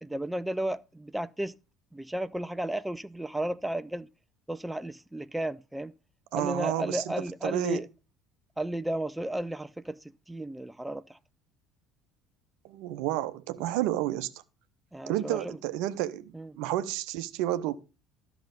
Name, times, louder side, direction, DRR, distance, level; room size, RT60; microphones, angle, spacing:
voice 1, 0.0-1.5 1.9-4.1 4.5-5.9 6.3-7.9 8.6-11.2 14.9-15.6 16.3-16.5, right 1 dB, 5° right, 0.4 m, -33 dB
voice 2, 6.3-7.1 7.4-7.8 12.6-14.4 15.1-17.8, right 14 dB, 60° right, 0.7 m, -31 dB
13.0 x 6.0 x 5.2 m
figure-of-eight pair, 60°, 0 cm